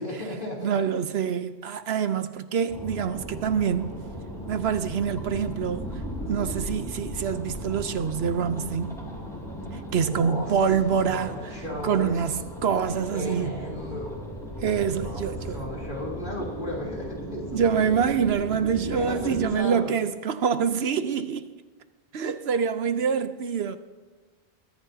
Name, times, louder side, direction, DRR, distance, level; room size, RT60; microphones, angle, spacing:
voice 1, 0.0-0.8 10.0-10.6 10.8-12.2 13.1-14.3 15.0-17.8 18.8-19.9, left 1 dB, 50° left, 3.5 m, -35 dB
voice 2, 0.6-4.0 4.5-5.9 6.2-9.0 9.7-11.6 11.8-13.6 14.6-15.6 17.5-21.5 22.1-23.8, right 7 dB, 70° right, 1.0 m, -26 dB
sound 1, 2.7-19.5, equal, 5° left, 3.6 m, -37 dB
22.0 x 14.0 x 2.8 m
omnidirectional pair, 1.1 m